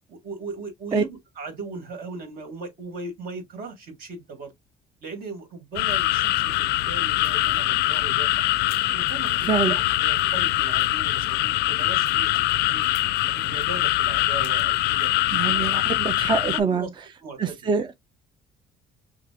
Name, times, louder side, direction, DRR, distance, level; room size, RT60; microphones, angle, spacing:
voice 1, 0.1-4.5 5.0-8.3 8.9-12.3 12.7-12.9 13.4-15.7 16.4-16.9 17.2-17.6, right 3 dB, 60° right, 1.8 m, -38 dB
sound 1, 5.8-16.6, left 16 dB, 80° left, 0.4 m, -23 dB
voice 2, 15.3-16.9 17.4-17.9, right 5 dB, 30° right, 0.5 m, -24 dB
5.9 x 2.0 x 2.8 m
cardioid pair, 110°, 17 cm